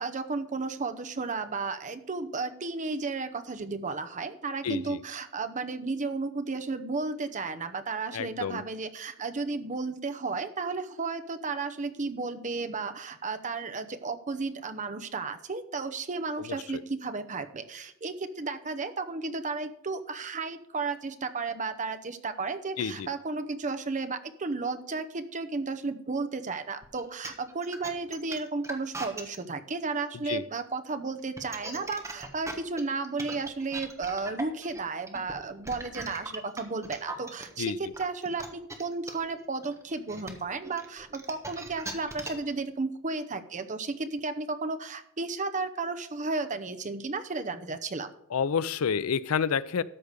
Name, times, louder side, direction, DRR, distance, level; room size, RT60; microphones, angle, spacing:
voice 1, 0.0-48.1, right 3 dB, 35° right, 9 dB, 0.8 m, -33 dB
voice 2, 4.6-5.0 8.1-8.6 16.7-16.8 22.8-23.1 30.3-30.4 37.6-37.8 48.3-49.8, left 6 dB, 85° left, 18 dB, 0.5 m, -29 dB
sound 1, 26.8-29.4 31.2-37.4 37.9-42.5, right 2 dB, 15° right, 1.3 m, -39 dB
13.0 x 5.1 x 6.6 m, 0.71 s
head